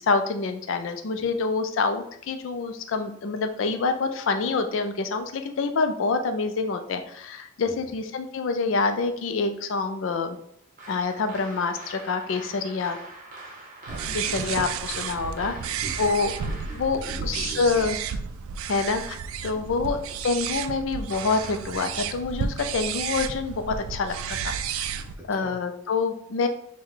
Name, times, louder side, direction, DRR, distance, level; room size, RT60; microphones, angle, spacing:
voice 1, 0.0-10.4 10.9-13.0 14.1-15.6 16.0-16.3 16.7-18.0 18.7-19.2 19.4-20.0 20.2-24.9 25.3-26.5, left 4 dB, 70° left, 7 dB, 0.4 m, -26 dB
sound 1, 10.8-16.9, right 2 dB, 40° right, 0.8 m, -44 dB
voice 2, 13.8-14.6 15.5-16.1 16.4-16.8 17.0-17.9 19.5-19.8 25.0-25.6, right 1 dB, 10° right, -4 dB, 0.9 m, -42 dB
sound 2, 13.9-25.2, right 7 dB, 85° right, 0.3 m, -32 dB
4.4 x 2.2 x 3.7 m, 0.72 s
head